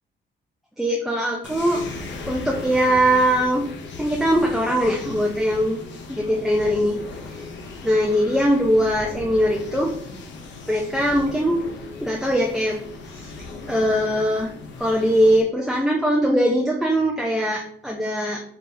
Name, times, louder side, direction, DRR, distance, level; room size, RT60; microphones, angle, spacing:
voice 1, 0.8-1.8 2.3-3.7 4.0-5.8 6.1-7.0 7.3-7.5 7.8-10.0 10.7-11.6 12.0-13.3 13.7-14.5 14.8-18.4, equal, ahead, -1 dB, 0.6 m, -21 dB
sound 1, 1.4-15.4, left 3 dB, 65° left, 0.7 m, -37 dB
4.1 x 3.4 x 2.7 m, 0.65 s
cardioid pair, 90°, 20 cm